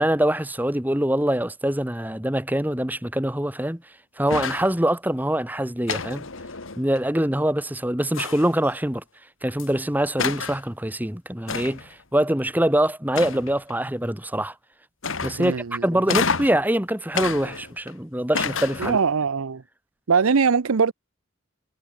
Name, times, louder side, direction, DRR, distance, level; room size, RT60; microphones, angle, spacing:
voice 1, 0.0-3.8 4.2-6.3 6.8-9.0 9.4-14.5 15.2-19.0, right 1 dB, 10° right, 1.4 m, -24 dB
sound 1, 4.3-4.7 5.9-7.0 8.1-8.7 9.6-9.7 10.2-10.6 11.5-11.9 13.1-13.7 15.0-15.6 16.1-16.6 17.1-17.9 18.3-19.1, left 5 dB, 70° left, 2.1 m, -29 dB
voice 2, 15.4-15.8 18.8-19.6 20.1-20.9, right 5 dB, 85° right, 0.6 m, -21 dB
head